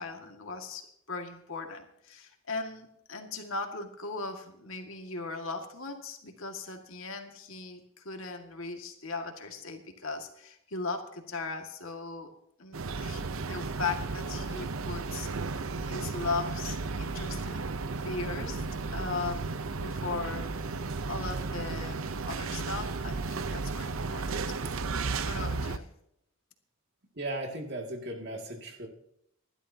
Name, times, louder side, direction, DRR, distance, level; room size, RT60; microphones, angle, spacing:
voice 1, 0.0-12.3 12.6-17.6 18.0-18.6 18.9-24.7 25.1-25.9, left 4 dB, 70° left, 4 dB, 2.0 m, -38 dB
sound 1, 12.7-25.8, right 3 dB, 70° right, 0.7 m, -34 dB
voice 2, 27.2-28.9, right 1 dB, 50° right, 2 dB, 2.3 m, -36 dB
26.5 x 12.0 x 2.8 m, 0.75 s
head